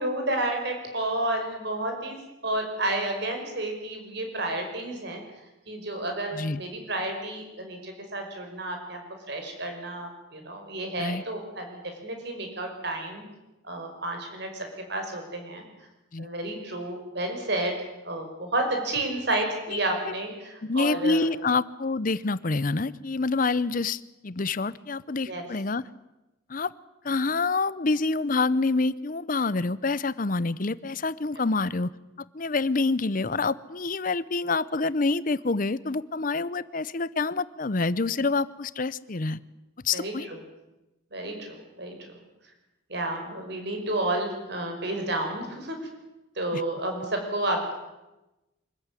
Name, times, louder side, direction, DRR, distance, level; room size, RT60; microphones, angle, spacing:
voice 1, 0.0-2.2 2.4-5.2 5.7-9.0 9.3-13.2 13.6-15.6 16.2-17.8 18.0-21.3 25.3-25.4 39.9-40.4 41.1-42.0 42.9-45.8 46.4-47.7, right 1 dB, 55° right, 4 dB, 5.5 m, -31 dB
voice 2, 19.7-20.1 20.6-25.8 26.5-26.7 27.0-31.9 32.3-39.4 39.8-40.3 46.5-46.6, left 3 dB, 40° left, 18 dB, 0.7 m, -27 dB
25.0 x 14.5 x 9.7 m, 1.0 s
head